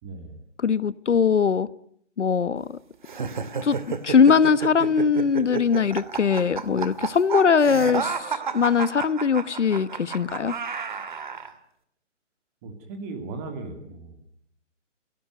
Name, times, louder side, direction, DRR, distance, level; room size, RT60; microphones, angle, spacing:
voice 1, 0.0-0.4 12.6-14.3, right 3 dB, 15° right, 6 dB, 2.6 m, -37 dB
voice 2, 0.6-1.7 2.2-2.8 3.6-3.8 4.0-10.5, left 6 dB, 70° left, 15 dB, 1.4 m, -21 dB
sound 1, 3.0-11.5, right 6 dB, 40° right, 2.4 m, -31 dB
30.0 x 17.5 x 9.4 m, 0.72 s
hypercardioid pair, 175°, 37 cm